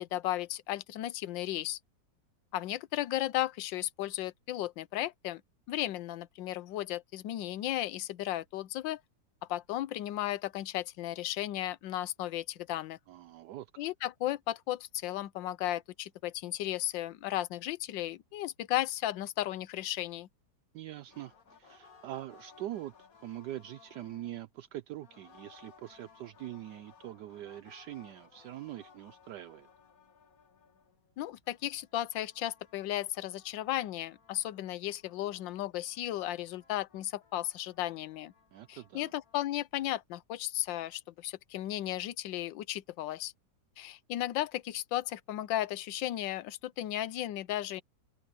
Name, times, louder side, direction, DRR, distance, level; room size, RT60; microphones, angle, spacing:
voice 1, 0.0-1.8 2.5-5.4 5.7-9.0 9.5-13.0 13.8-20.3 31.2-38.3 38.7-43.3 43.8-47.8, left 14 dB, 85° left, 1.4 m, -35 dB
voice 2, 13.1-13.8 20.7-29.7 38.5-39.1, right 13 dB, 75° right, 1.2 m, -43 dB
sound 1, 21.1-24.5 25.0-31.1 31.4-39.6, left 6 dB, 50° left, 2.0 m, -61 dB
omnidirectional pair, 2.0 m